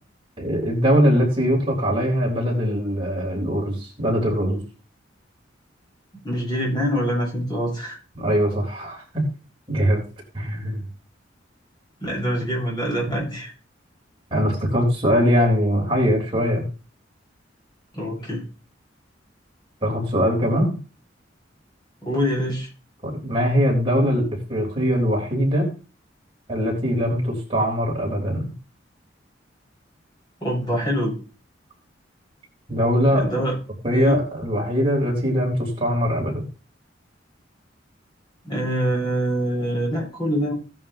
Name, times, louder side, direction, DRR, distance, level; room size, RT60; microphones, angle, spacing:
voice 1, 0.4-4.6 8.1-9.3 9.7-10.0 10.3-10.8 14.3-16.6 19.8-20.7 23.0-25.7 26.5-28.5 32.7-33.3 33.8-36.4, equal, 30° right, -2 dB, 3.9 m, -21 dB
voice 2, 6.2-8.0 12.0-13.5 17.9-18.4 22.0-22.7 30.4-31.2 33.1-33.5 33.9-34.2 38.4-40.5, equal, 25° left, -1 dB, 7.4 m, -25 dB
17.0 x 11.0 x 2.9 m, 0.37 s
head